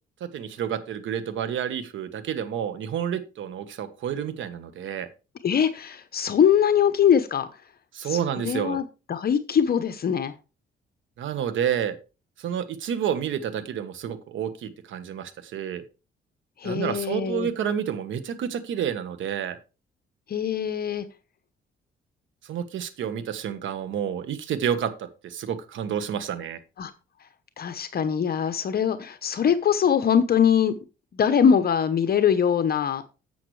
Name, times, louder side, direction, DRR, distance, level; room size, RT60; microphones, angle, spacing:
voice 1, 0.2-5.1 7.9-8.8 11.2-12.0 12.4-15.8 16.6-19.6 22.4-26.6, right 8 dB, 75° right, 11 dB, 1.3 m, -29 dB
voice 2, 5.4-7.5 8.0-10.3 16.6-17.5 20.3-21.0 26.8-26.9 27.6-30.7 31.1-33.0, left 8 dB, 50° left, 10 dB, 0.9 m, -22 dB
10.5 x 7.8 x 3.2 m, 0.31 s
cardioid pair, 90°, 20 cm